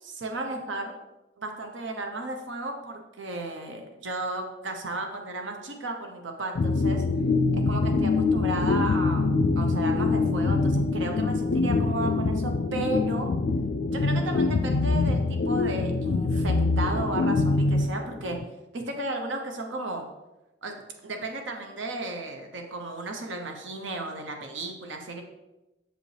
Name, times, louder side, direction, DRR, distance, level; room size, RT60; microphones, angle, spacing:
voice 1, 0.0-1.0 1.4-7.0 7.5-13.3 13.9-18.4 18.7-20.1 20.6-20.8 21.0-25.2, right 2 dB, 80° right, 4 dB, 0.8 m, -34 dB
sound 1, 6.6-18.4, left 3 dB, 55° left, 0.4 m, -24 dB
7.7 x 5.1 x 3.3 m, 1.0 s
head